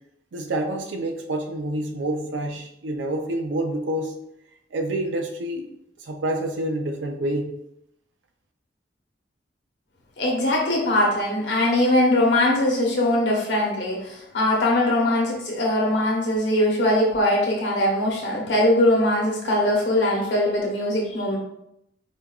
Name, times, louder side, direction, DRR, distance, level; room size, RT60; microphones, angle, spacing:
voice 1, 0.3-4.1 4.7-5.7 6.0-7.5, right 1 dB, 85° right, 4 dB, 0.5 m, -27 dB
voice 2, 10.2-21.4, left 1 dB, 70° left, -2 dB, 1.0 m, -21 dB
4.4 x 2.3 x 2.3 m, 0.78 s
head